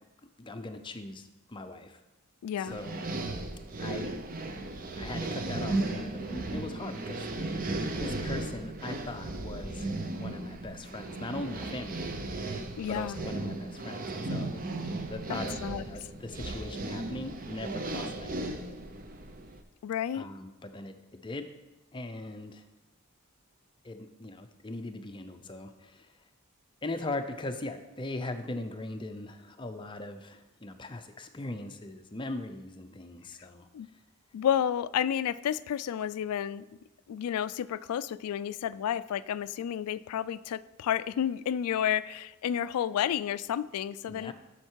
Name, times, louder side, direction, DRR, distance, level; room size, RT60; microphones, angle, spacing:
voice 1, 0.4-2.0 2.6-3.0 3.8-4.1 5.0-12.1 12.9-14.6 15.0-15.6 15.8-18.6 20.1-21.5 21.9-22.7 23.8-26.1 26.8-33.7 44.1-44.3, left 2 dB, 20° left, 8 dB, 0.5 m, -40 dB
voice 2, 2.4-2.8 12.8-13.2 15.3-15.8 19.8-20.3 33.4-33.5 33.7-33.9 34.3-36.6 37.1-44.3, left 9 dB, 85° left, 17 dB, 0.3 m, -31 dB
sound 1, 2.7-19.6, right 2 dB, 40° right, 0.6 m, -36 dB
7.8 x 6.5 x 4.5 m, 1.1 s
head